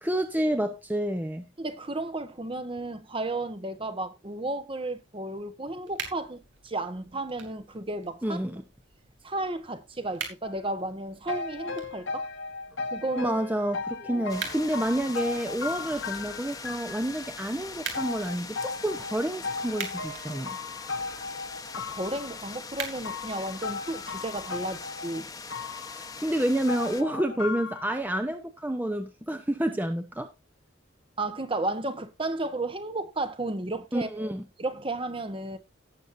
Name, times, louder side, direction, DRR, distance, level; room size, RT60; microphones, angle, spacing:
voice 1, 0.0-1.5 8.2-8.6 13.2-20.6 25.8-30.3 33.9-34.4, right 1 dB, 10° right, 0.8 m, -29 dB
voice 2, 1.6-8.4 9.2-12.3 12.9-13.3 14.0-14.2 21.8-25.3 31.2-34.3 34.6-35.6, right 2 dB, 30° right, 1.2 m, -33 dB
sound 1, 5.8-24.8, right 6 dB, 75° right, 3.0 m, -45 dB
sound 2, 10.4-10.5 11.3-17.3 17.9-22.6 23.0-25.2 25.5-27.9, left 4 dB, 85° left, 1.6 m, -37 dB
sound 3, 14.3-27.0, left 4 dB, 20° left, 1.1 m, -42 dB
17.5 x 7.3 x 2.7 m
head